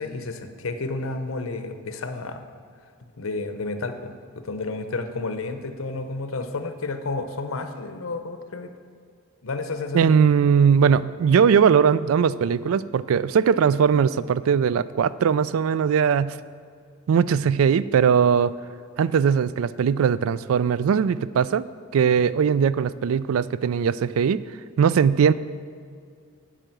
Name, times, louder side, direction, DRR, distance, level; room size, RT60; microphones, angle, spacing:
voice 1, 0.0-2.4 3.2-8.7 9.4-10.1 22.1-22.2, left 3 dB, 75° left, 8 dB, 0.8 m, -31 dB
voice 2, 9.9-16.4 17.1-18.5 19.0-21.6 21.9-24.4 24.8-25.3, right 7 dB, 80° right, 16 dB, 0.3 m, -20 dB
10.0 x 4.9 x 7.8 m, 2.2 s
head